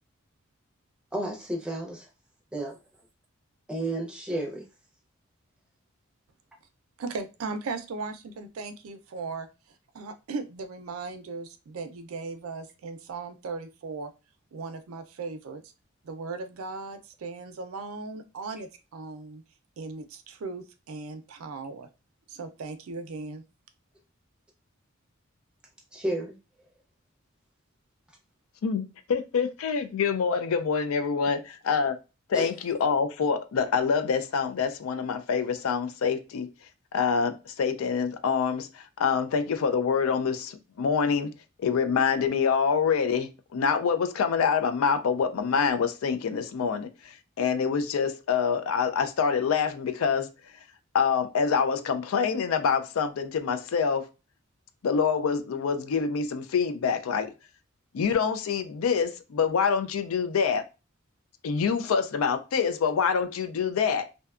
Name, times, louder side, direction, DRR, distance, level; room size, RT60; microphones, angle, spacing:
voice 1, 1.1-2.0 2.5-2.8 3.7-4.6 25.9-26.3 32.3-32.5, right 1 dB, 5° right, 0.6 m, -31 dB
voice 2, 7.0-9.5 9.9-14.1 14.5-15.6 16.0-19.4 19.8-21.9 22.3-23.4, right 4 dB, 90° right, 0.4 m, -37 dB
voice 3, 28.6-32.0 32.3-36.5 36.9-41.3 41.6-46.9 47.4-50.3 50.9-54.1 54.8-57.3 57.9-60.7 61.4-64.1, left 6 dB, 85° left, 0.4 m, -26 dB
2.6 x 2.2 x 2.3 m
head